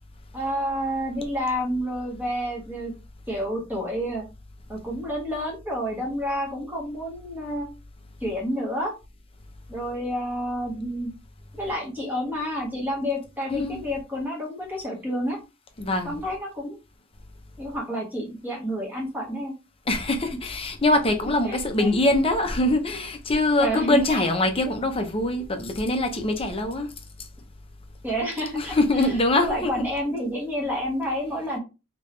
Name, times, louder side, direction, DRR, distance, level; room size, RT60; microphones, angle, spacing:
voice 1, 0.3-2.9 3.3-4.2 4.7-7.7 8.2-8.9 9.7-11.1 11.5-15.4 16.0-16.8 17.6-19.5 21.5-21.9 23.6-24.2 28.0-28.8 29.3-31.6, equal, 10° right, 1.4 m, -29 dB
voice 2, 13.5-13.8 15.8-16.2 19.9-26.9 28.5-29.7, left 2 dB, 25° left, 0.7 m, -23 dB
3.4 x 2.9 x 3.2 m
head